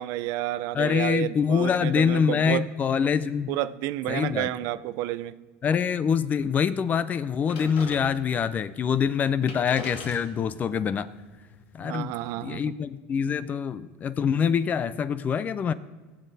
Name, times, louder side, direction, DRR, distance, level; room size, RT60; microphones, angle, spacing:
voice 1, 0.0-2.7 3.5-5.4 11.8-12.6, right 14 dB, 60° right, 15 dB, 0.5 m, -30 dB
voice 2, 0.7-3.5 4.1-4.5 5.6-11.1 11.7-12.1 12.4-15.7, left 7 dB, 25° left, 16 dB, 0.5 m, -25 dB
sound 1, 7.5-8.5 9.1-9.2 9.4-12.4, left 4 dB, 70° left, 2.6 m, -43 dB
19.5 x 7.4 x 4.1 m, 1.3 s
supercardioid pair, 145°, 6 cm